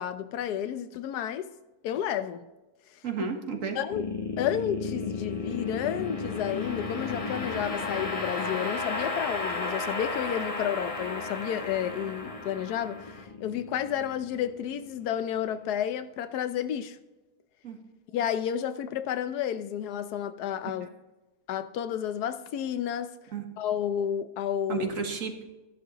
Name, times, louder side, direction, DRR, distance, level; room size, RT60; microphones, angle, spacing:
voice 1, 0.0-1.5 1.8-2.5 2.9-3.0 3.7-4.1 4.4-17.0 18.1-20.9 21.5-23.1 23.6-24.9, left 9 dB, 80° left, 1.2 m, -31 dB
voice 2, 3.0-3.8 17.6-17.8 20.8-20.9 23.3-23.4 24.7-25.4, right 5 dB, 55° right, 1.6 m, -32 dB
sound 1, 3.9-15.1, left 3 dB, 25° left, 0.9 m, -34 dB
14.0 x 11.0 x 3.0 m
omnidirectional pair, 1.7 m